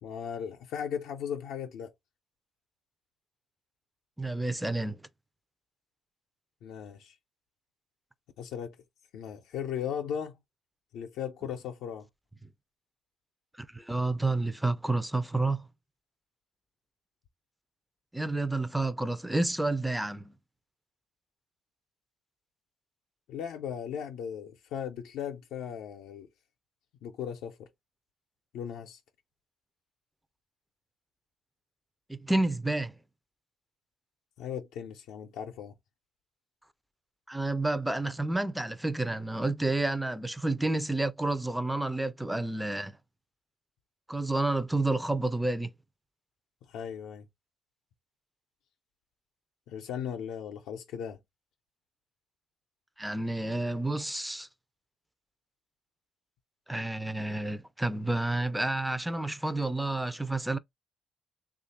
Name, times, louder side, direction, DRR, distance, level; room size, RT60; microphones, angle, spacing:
voice 1, 0.0-1.9 6.6-7.1 8.4-8.8 9.1-10.4 10.9-12.1 23.3-26.3 27.0-27.7 28.5-29.0 34.4-35.7 46.7-47.3 49.7-51.2, left 8 dB, 85° left, 0.5 m, -37 dB
voice 2, 4.2-5.0 13.6-15.7 18.1-20.3 32.1-32.9 37.3-43.0 44.1-45.7 53.0-54.5 56.7-60.6, right 2 dB, 5° right, 0.5 m, -30 dB
3.1 x 2.4 x 4.2 m
cardioid pair, 80°, 0 cm